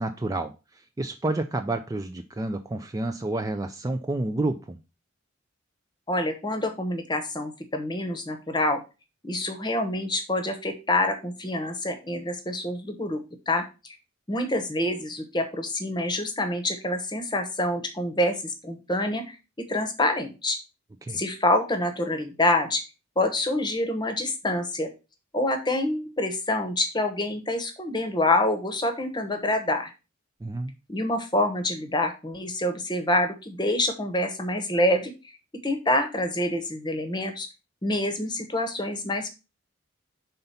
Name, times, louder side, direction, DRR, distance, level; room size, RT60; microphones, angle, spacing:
voice 1, 0.0-4.8 21.0-21.2 30.4-30.7, right 2 dB, 15° right, 7 dB, 0.3 m, -30 dB
voice 2, 6.1-8.8 9.2-13.9 14.3-19.4 19.7-20.6 21.1-22.8 23.2-24.9 25.3-29.9 30.9-35.1 35.6-37.5 37.8-39.3, left 1 dB, 20° left, 7 dB, 0.9 m, -26 dB
5.5 x 3.9 x 5.5 m, 0.30 s
head